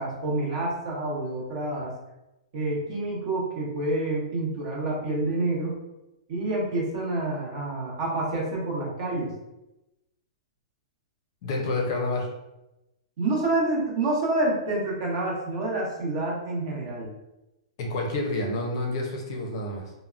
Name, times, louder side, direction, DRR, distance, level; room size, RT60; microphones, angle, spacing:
voice 1, 0.0-1.9 2.5-5.8 6.3-9.3 13.2-17.1, right 2 dB, 40° right, -3 dB, 0.9 m, -28 dB
voice 2, 11.4-12.3 17.8-19.9, left 2 dB, 40° left, 1 dB, 0.5 m, -29 dB
3.6 x 2.0 x 2.4 m, 0.95 s
hypercardioid pair, 170°, 3 cm